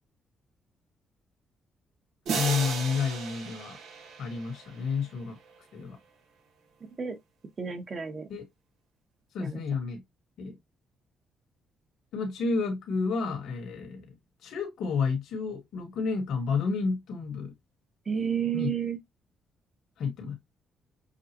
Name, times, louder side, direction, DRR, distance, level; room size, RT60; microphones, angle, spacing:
voice 1, 2.3-3.8 4.2-5.4 5.7-6.0 8.3-8.4 9.3-10.0 10.4-10.5 12.1-14.0 14.4-17.5 18.5-18.7 20.0-20.4, left 5 dB, 75° left, 1.5 m, -30 dB
sound 1, 2.3-5.1, right 5 dB, 80° right, 1.6 m, -35 dB
voice 2, 6.8-7.2 7.6-8.3 9.4-9.6 18.0-19.0, right 7 dB, 40° right, 1.3 m, -31 dB
6.5 x 2.4 x 3.0 m
cardioid pair, 90°, 0 cm